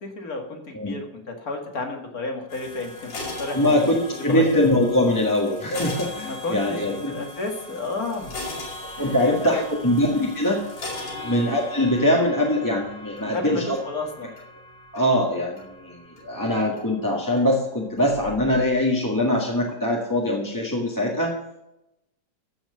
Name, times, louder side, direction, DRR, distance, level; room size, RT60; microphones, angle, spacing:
voice 1, 0.0-3.1 3.4-3.8 4.3-4.6 6.2-8.6 9.0-9.6 11.1-11.5 13.2-14.3, left 3 dB, 50° left, 3 dB, 2.4 m, -32 dB
sound 1, 2.5-18.7, left 2 dB, 80° left, 3.2 m, -39 dB
voice 2, 3.5-7.1 9.0-10.6 11.2-13.8 14.9-21.3, left 1 dB, 10° left, -2 dB, 1.5 m, -22 dB
14.5 x 5.9 x 6.8 m, 0.87 s
omnidirectional pair, 2.0 m